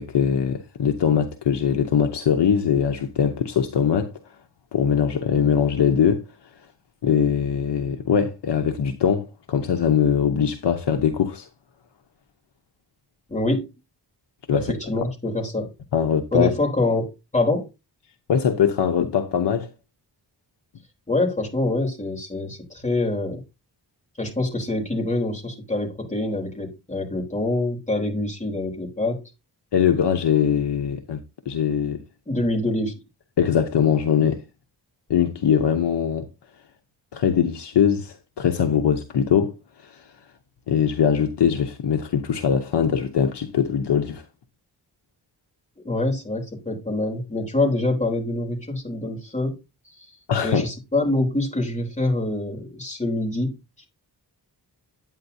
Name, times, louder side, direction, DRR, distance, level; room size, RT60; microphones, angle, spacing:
voice 1, 0.0-4.1 4.7-6.2 7.0-11.5 14.5-14.7 15.9-16.5 18.3-19.7 29.7-32.0 33.4-34.4 35.1-36.3 37.1-39.6 39.8-40.1 40.7-44.2 50.3-50.6, left 7 dB, 75° left, 0.9 m, -21 dB
voice 2, 13.3-13.7 14.5-15.7 16.3-17.7 21.1-23.4 24.2-29.2 32.3-33.0 45.8-49.6 49.8-50.1 50.4-53.9, left 2 dB, 15° left, 3.6 m, -25 dB
9.4 x 9.0 x 2.7 m
wide cardioid pair, 130°, 41 cm